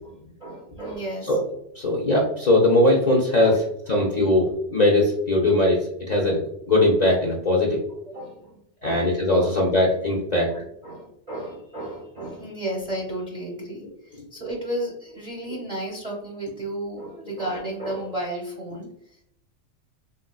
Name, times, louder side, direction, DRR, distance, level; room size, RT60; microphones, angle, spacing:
voice 1, 0.0-1.4 3.0-3.1 3.4-3.6 8.1-8.5 8.8-9.6 10.5-13.9 14.3-18.9, right 1 dB, 40° right, -2 dB, 0.7 m, -33 dB
voice 2, 1.8-5.8 6.1-6.4 6.7-7.8 8.8-10.5, left 1 dB, 50° left, -3 dB, 0.5 m, -20 dB
3.6 x 2.5 x 2.2 m, 0.75 s
omnidirectional pair, 1.2 m